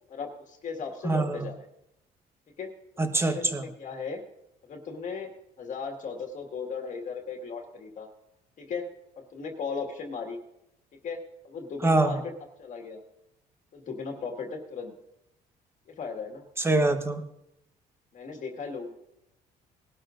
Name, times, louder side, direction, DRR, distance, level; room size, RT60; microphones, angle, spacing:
voice 1, 0.1-1.7 2.6-2.7 3.1-4.2 4.6-5.3 5.6-8.1 8.6-8.9 9.2-10.4 11.0-12.3 12.6-13.0 13.7-14.9 15.9-16.4 18.1-19.0, left 5 dB, 50° left, 2 dB, 1.9 m, -37 dB
voice 2, 1.0-1.5 3.0-3.6 11.8-12.2 16.6-17.2, right 2 dB, 15° right, 7 dB, 1.1 m, -24 dB
20.0 x 12.5 x 2.6 m, 0.84 s
cardioid pair, 110°, 17 cm